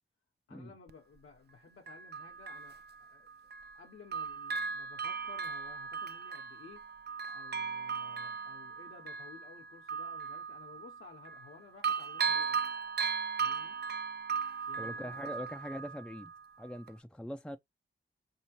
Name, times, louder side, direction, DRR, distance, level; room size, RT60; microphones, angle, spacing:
voice 1, 0.5-3.3 3.7-6.9 7.3-12.6 13.4-13.8 14.7-15.5, left 5 dB, 70° left, 0.9 m, -55 dB
Bell, 0.9-1.0 1.9-3.8 4.1-11.5 11.8-16.4 16.9-17.0, right 6 dB, 50° right, 0.5 m, -37 dB
voice 2, 14.8-16.3 16.6-17.6, equal, 5° left, 0.4 m, -42 dB
4.9 x 2.8 x 2.9 m
cardioid pair, 55°, 21 cm